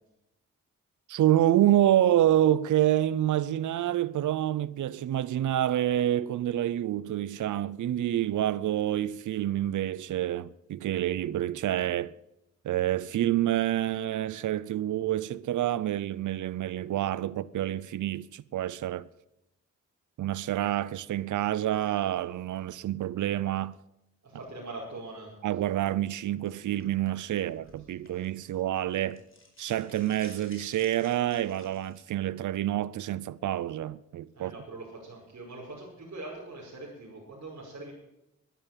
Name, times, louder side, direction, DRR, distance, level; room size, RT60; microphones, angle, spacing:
voice 1, 1.1-12.1 12.6-19.1 20.2-23.7 25.4-29.2 29.6-34.5, right 12 dB, 70° right, 0.6 m, -27 dB
voice 2, 24.2-25.3 34.3-37.9, right 2 dB, 55° right, 5.4 m, -42 dB
sound 1, 26.5-28.6 28.9-32.0, left 2 dB, 40° left, 4.9 m, -54 dB
12.5 x 11.0 x 7.4 m
supercardioid pair, 40°, 31 cm